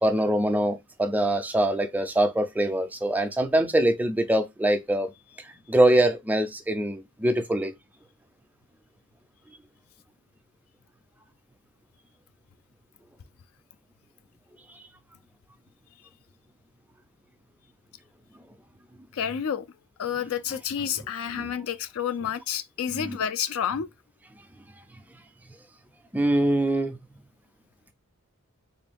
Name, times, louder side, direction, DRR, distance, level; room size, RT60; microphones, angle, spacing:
voice 1, 0.0-5.1 5.4-7.7 14.7-14.8 21.3-21.5 22.9-23.2 26.1-27.0, right 1 dB, 5° right, 0.3 m, -24 dB
voice 2, 19.1-19.7 20.0-23.9, left 8 dB, 70° left, 0.4 m, -29 dB
3.7 x 2.5 x 3.4 m
head